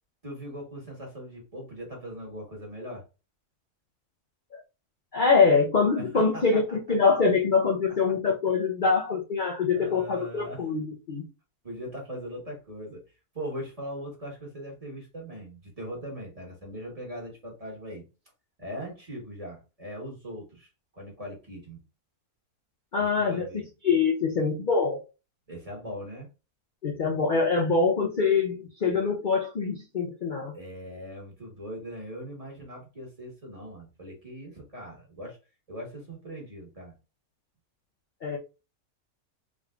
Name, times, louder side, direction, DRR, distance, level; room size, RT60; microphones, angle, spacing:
voice 1, 0.2-3.0 5.9-6.8 9.7-10.6 11.6-13.0 13.3-18.0 18.6-21.8 23.0-23.6 25.5-26.3 30.5-35.4 35.7-36.9, equal, 25° right, 1.3 m, -40 dB
voice 2, 5.1-11.2 22.9-23.5 23.8-25.0 26.8-30.5 38.2-38.4, left 4 dB, 50° left, 0.5 m, -24 dB
3.8 x 3.5 x 2.4 m
omnidirectional pair, 1.7 m